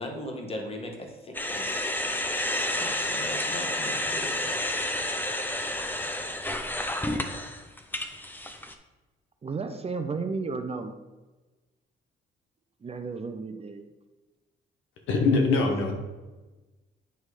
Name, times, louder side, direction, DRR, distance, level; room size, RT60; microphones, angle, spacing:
voice 1, 0.0-1.6 2.8-4.6, left 1 dB, 30° left, 2 dB, 1.6 m, -38 dB
sound 1, 1.3-8.7, left 1 dB, 10° left, 0.6 m, -30 dB
voice 2, 9.4-10.9 12.8-13.9, right 4 dB, 30° right, 7 dB, 0.6 m, -33 dB
voice 3, 15.1-15.9, left 3 dB, 85° left, 3 dB, 1.2 m, -22 dB
9.2 x 3.2 x 4.9 m, 1.2 s
cardioid pair, 90°, 20 cm